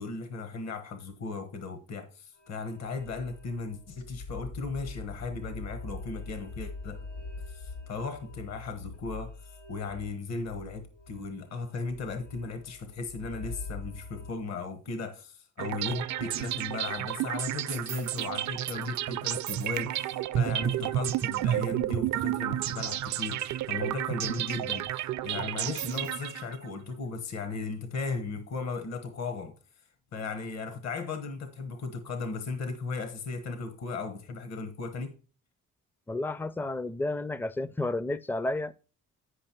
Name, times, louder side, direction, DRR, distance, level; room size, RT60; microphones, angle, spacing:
voice 1, 0.0-7.0 7.5-24.9 25.2-29.6 30.1-35.2, left 4 dB, 60° left, 1.2 m, -36 dB
sound 1, 2.3-14.3, left 3 dB, 80° left, 5.0 m, -43 dB
sound 2, 15.6-26.7, right 13 dB, 70° right, 0.5 m, -31 dB
voice 2, 36.1-38.8, left 2 dB, 5° left, 0.4 m, -31 dB
10.0 x 5.3 x 4.4 m
cardioid pair, 90°, 30 cm